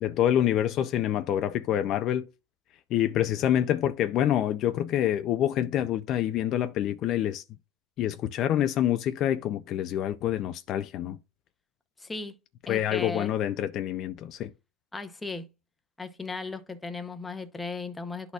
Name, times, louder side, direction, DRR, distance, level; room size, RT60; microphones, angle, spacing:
voice 1, 0.0-2.3 2.9-7.4 8.0-11.2 12.7-14.5, left 11 dB, 40° left, 0.4 m, -26 dB
voice 2, 12.0-12.4 12.7-13.3 14.9-15.5 16.0-18.3, left 3 dB, 10° left, 0.7 m, -36 dB
11.5 x 4.1 x 2.3 m
supercardioid pair, 145°, 0 cm